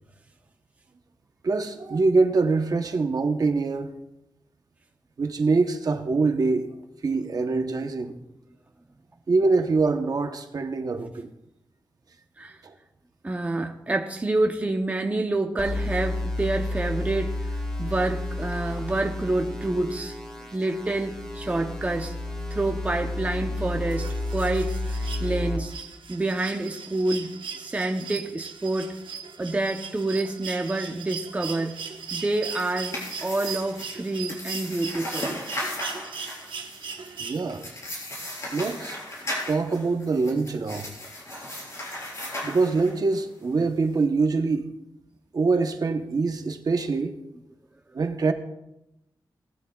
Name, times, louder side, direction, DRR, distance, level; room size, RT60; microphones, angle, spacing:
voice 1, 1.4-4.0 5.2-6.7 7.0-8.1 9.3-11.3 12.6-12.7 37.2-37.7 38.5-39.0 39.5-40.9 42.4-44.7 45.3-47.2 47.9-48.3, right 3 dB, 50° right, 0.9 m, -24 dB
voice 2, 13.2-20.2 20.5-22.1 22.5-24.8 25.2-25.7 26.1-29.0 29.4-31.8 32.1-35.4, right 2 dB, 20° right, 0.6 m, -28 dB
sound 1, 15.6-25.6, left 2 dB, 10° left, 1.8 m, -31 dB
sound 2, 23.9-37.8 39.2-39.3, right 6 dB, 85° right, 1.0 m, -39 dB
sound 3, 32.3-43.2, left 1 dB, 40° left, 4.1 m, -36 dB
18.0 x 12.0 x 2.3 m
wide cardioid pair, 165°, 8 cm